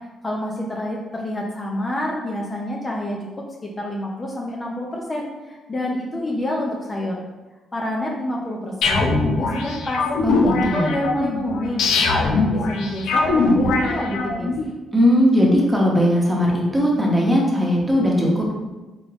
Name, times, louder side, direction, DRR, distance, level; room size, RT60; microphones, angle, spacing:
voice 1, 0.2-7.2 7.7-10.0 10.7-14.5, left 1 dB, 25° left, -2 dB, 0.6 m, -28 dB
sound 1, 8.8-14.6, left 3 dB, 80° left, 0.5 m, -21 dB
voice 2, 14.9-18.5, equal, 10° right, -3 dB, 1.1 m, -18 dB
3.8 x 3.3 x 3.0 m, 1.1 s
cardioid pair, 90°, 0 cm